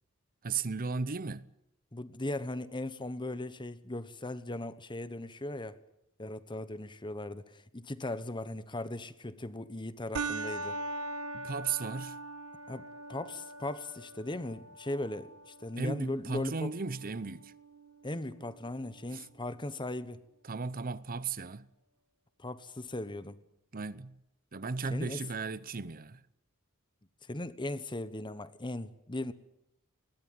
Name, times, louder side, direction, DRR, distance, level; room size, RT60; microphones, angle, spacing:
voice 1, 0.4-1.5 11.3-12.2 15.8-17.5 19.1-19.3 20.5-21.7 23.7-24.2 24.5-26.2, right 4 dB, 40° right, 0.8 m, -35 dB
voice 2, 1.9-5.8 6.2-10.8 12.7-16.7 18.0-20.2 22.4-23.4 24.9-25.2 27.2-29.3, left 1 dB, 20° left, 1.1 m, -38 dB
sound 1, 10.1-19.1, right 2 dB, 80° right, 1.5 m, -42 dB
21.0 x 18.0 x 9.3 m
head